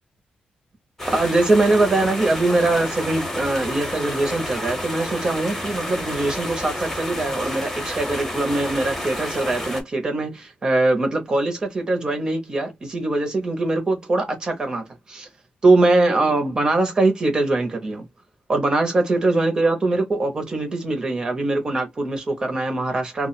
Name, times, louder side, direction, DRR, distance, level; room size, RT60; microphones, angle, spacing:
sound 1, 1.0-9.8, left 1 dB, 10° left, 0.8 m, -30 dB
voice 1, 1.1-15.3 15.6-18.1 18.5-23.3, right 2 dB, 30° right, 0.6 m, -22 dB
2.2 x 2.1 x 3.8 m
wide cardioid pair, 180°, 3 cm